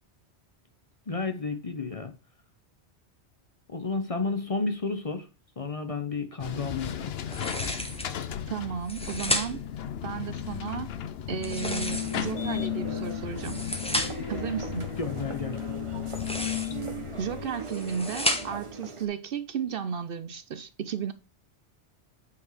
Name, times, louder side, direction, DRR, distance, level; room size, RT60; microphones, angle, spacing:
voice 1, 1.1-2.1 3.7-5.3 5.6-7.1 15.0-15.7, left 4 dB, 35° left, 0.9 m, -31 dB
sound 1, 6.4-17.5, left 11 dB, 65° left, 0.9 m, -35 dB
sound 2, 7.3-8.2 8.7-9.7 11.3-12.4 13.2-14.3 16.0-16.9 17.5-18.7, left 1 dB, 5° left, 1.1 m, -33 dB
voice 2, 8.5-9.6 10.0-10.9 11.3-13.7 14.3-14.9 17.2-21.1, right 7 dB, 60° right, 0.7 m, -34 dB
sound 3, 11.9-19.1, right 3 dB, 30° right, 1.2 m, -40 dB
8.5 x 4.5 x 4.9 m
omnidirectional pair, 1.2 m